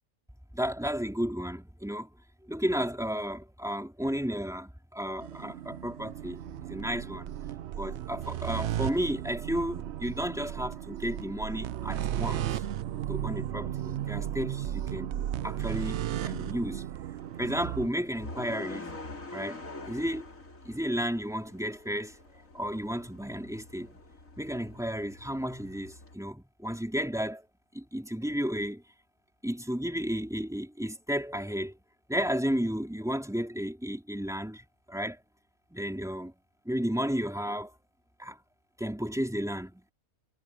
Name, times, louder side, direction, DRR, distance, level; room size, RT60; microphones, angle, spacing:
voice 1, 0.5-2.1 2.4-7.4 7.8-12.6 13.1-16.9 17.4-20.3 20.6-22.2 22.5-24.0 24.4-27.4 27.7-28.8 29.4-31.8 32.1-35.2 35.7-36.3 36.6-37.7 38.2-38.4 38.8-39.9, equal, ahead, 3.3 m, -33 dB
sound 1, 5.2-17.9, right 11 dB, 60° right, 0.7 m, -35 dB
sound 2, 17.2-26.1, left 2 dB, 60° left, 4.0 m, -46 dB
omnidirectional pair, 1.6 m